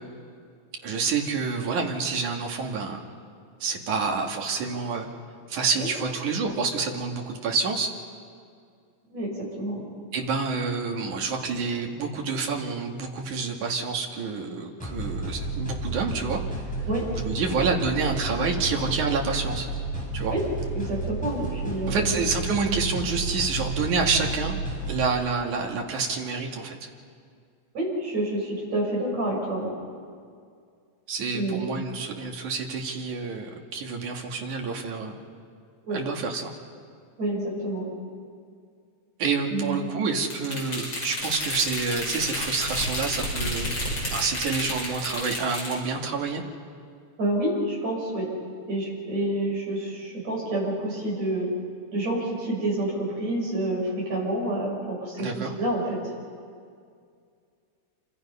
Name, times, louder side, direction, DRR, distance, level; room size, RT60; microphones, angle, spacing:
voice 1, 0.8-3.0 3.6-5.1 5.5-7.9 10.1-16.4 17.2-19.7 20.1-20.3 21.9-24.6 24.9-26.8 31.1-35.2 35.9-36.5 39.2-43.7 44.1-46.4 55.2-55.5, right 4 dB, 80° right, 1 dB, 3.6 m, -28 dB
voice 2, 9.1-9.9 16.9-17.0 20.3-20.4 20.7-22.1 27.7-29.7 31.3-31.7 35.9-36.0 37.2-37.9 39.5-39.9 47.2-48.3 48.7-51.5 51.9-56.1, right 1 dB, 60° right, -3 dB, 8.0 m, -28 dB
sound 1, 14.8-25.1, right 2 dB, ahead, 4.7 m, -32 dB
sound 2, 40.2-45.8, left 1 dB, 35° left, 6.4 m, -31 dB
28.0 x 25.5 x 5.6 m, 2.2 s
omnidirectional pair, 3.4 m